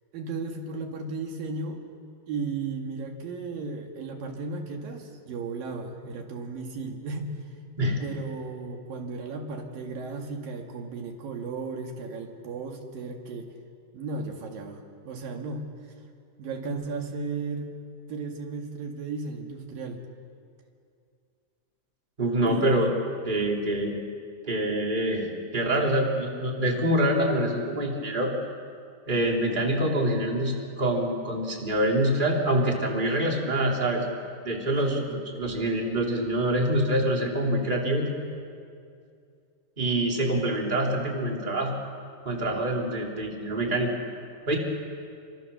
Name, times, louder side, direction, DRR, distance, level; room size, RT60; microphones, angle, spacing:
voice 1, 0.1-1.8 2.3-7.3 8.0-13.5 13.9-15.7 16.4-17.7 18.1-20.0 22.5-22.8 34.9-35.1, right 4 dB, 80° right, 2 dB, 3.8 m, -35 dB
voice 2, 22.2-22.9 23.2-23.9 24.5-28.3 29.1-34.1 34.4-38.1 39.8-41.7 42.2-43.9 44.5-44.6, right 1 dB, 15° right, -1 dB, 3.2 m, -25 dB
28.5 x 25.0 x 7.0 m, 2.4 s
omnidirectional pair, 4.0 m